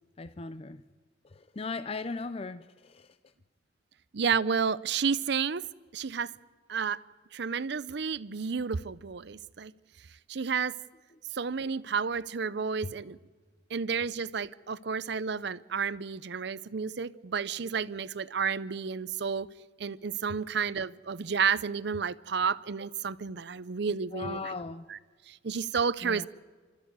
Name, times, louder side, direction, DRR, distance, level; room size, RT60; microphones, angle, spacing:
voice 1, 0.2-0.8 1.2-3.2 12.8-12.9 24.1-24.9 26.0-26.3, left 3 dB, 30° left, 0.5 m, -38 dB
voice 2, 4.1-5.6 5.9-6.3 6.7-7.0 7.3-9.7 10.3-10.8 11.3-13.2 13.7-19.5 19.8-24.5 24.9-25.0 25.3-26.3, right 6 dB, 60° right, 0.6 m, -31 dB
29.5 x 13.5 x 8.1 m
head